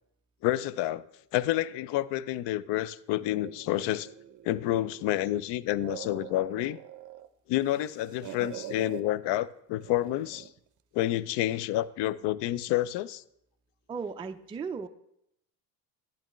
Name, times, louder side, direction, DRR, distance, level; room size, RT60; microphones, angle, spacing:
voice 1, 0.4-1.1 1.3-4.1 4.4-6.8 7.5-10.5 10.9-13.2, left 14 dB, 60° left, 0.6 m, -29 dB
sound 1, 3.4-5.2 5.6-7.3 7.6-9.0 9.8-10.6, right 11 dB, 40° right, 0.7 m, -45 dB
voice 2, 13.9-14.9, right 5 dB, 10° right, 0.3 m, -36 dB
12.0 x 8.6 x 3.1 m
supercardioid pair, 80°, 47 cm